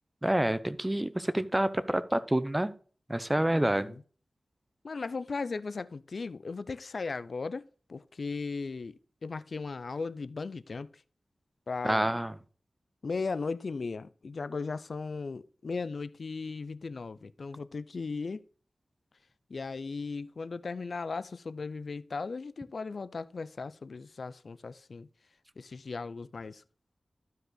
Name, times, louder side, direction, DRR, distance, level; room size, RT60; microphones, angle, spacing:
voice 1, 0.2-2.7 3.1-3.9 11.8-12.3, right 1 dB, 15° right, 0.7 m, -28 dB
voice 2, 3.4-4.0 4.8-11.0 11.7-12.1 13.0-18.4 19.5-25.1 25.6-26.6, left 4 dB, 70° left, 0.4 m, -37 dB
12.0 x 5.4 x 3.9 m
wide cardioid pair, 60°, 0 cm